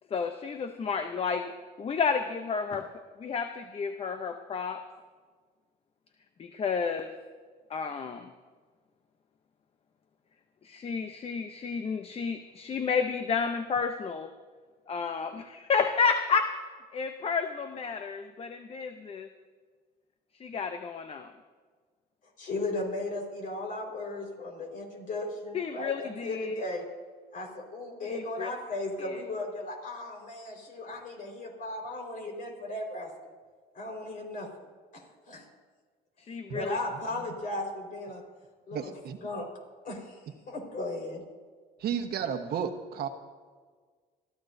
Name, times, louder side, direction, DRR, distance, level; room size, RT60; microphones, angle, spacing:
voice 1, 0.1-1.5 1.8-2.9 3.2-4.8 6.4-7.1 7.7-8.3 10.6-14.3 14.9-16.6 16.9-19.3 20.4-21.3 25.5-26.5 28.0-28.5 29.0-29.2 36.3-36.8, left 5 dB, 35° left, 7 dB, 0.7 m, -31 dB
voice 2, 22.4-26.8 27.3-33.1 33.7-34.5 34.9-35.4 36.5-38.2 38.7-38.9 39.2-39.5 39.8-40.2 40.5-41.2, left 2 dB, 50° left, 1 dB, 4.6 m, -36 dB
voice 3, 38.7-39.2 41.8-43.1, right 8 dB, 70° right, 6 dB, 1.2 m, -33 dB
27.0 x 14.5 x 2.7 m, 1.5 s
cardioid pair, 110°, 17 cm